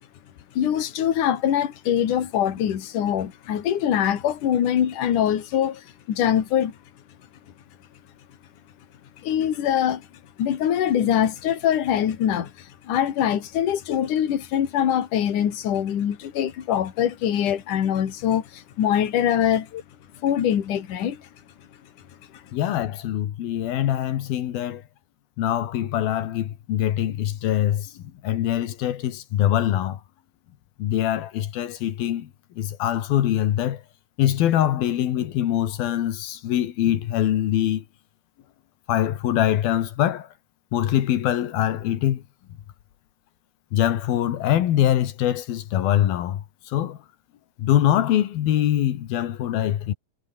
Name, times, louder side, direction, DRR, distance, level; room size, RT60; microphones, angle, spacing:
voice 1, 0.5-6.8 9.2-10.1 10.4-19.7 20.2-21.3 22.3-22.4, left 10 dB, 60° left, 3.6 m, -23 dB
voice 2, 22.5-24.8 25.4-30.0 30.8-32.3 32.6-33.8 34.2-37.9 38.9-40.3 40.7-42.2 43.7-47.0 47.6-49.9, left 11 dB, 85° left, 3.5 m, -23 dB
omnidirectional pair, 4.1 m